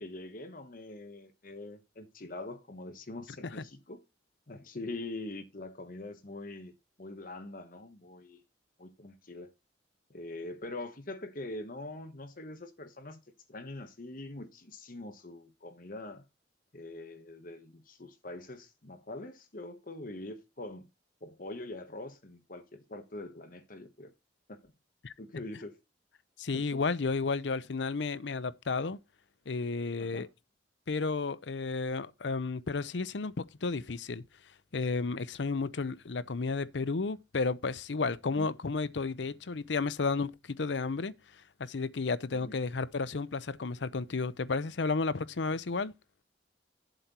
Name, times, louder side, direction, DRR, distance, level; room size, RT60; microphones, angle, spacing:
voice 1, 0.0-4.0 4.5-6.7 7.0-8.4 8.8-9.5 10.1-13.2 13.5-16.2 16.7-20.9 21.2-24.1 24.5-24.7 25.2-25.8 26.5-26.8 30.0-30.3 42.3-42.6, left 2 dB, 50° left, 1.3 m, -43 dB
voice 2, 26.4-29.0 29.5-30.3 30.9-34.2 34.7-41.1 41.6-45.9, left 4 dB, 80° left, 0.7 m, -32 dB
7.8 x 4.4 x 6.7 m
head